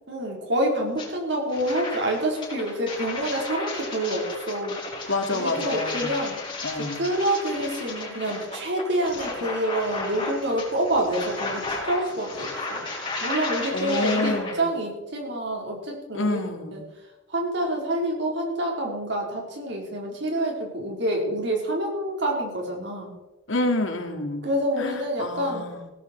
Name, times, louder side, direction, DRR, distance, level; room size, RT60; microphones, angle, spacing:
voice 1, 0.1-4.8 5.3-6.4 7.0-12.5 13.2-16.4 16.7-16.8 17.3-23.1 24.4-25.7, right 1 dB, 65° right, 0 dB, 4.5 m, -27 dB
sound 1, 1.0-1.1 1.5-14.5, left 3 dB, 25° left, 5.1 m, -34 dB
voice 2, 5.1-6.3 6.6-7.0 13.7-14.7 16.1-16.8 23.5-24.5 24.8-25.9, left 2 dB, 80° left, 4 dB, 2.4 m, -28 dB
17.0 x 13.5 x 4.6 m, 1.0 s
head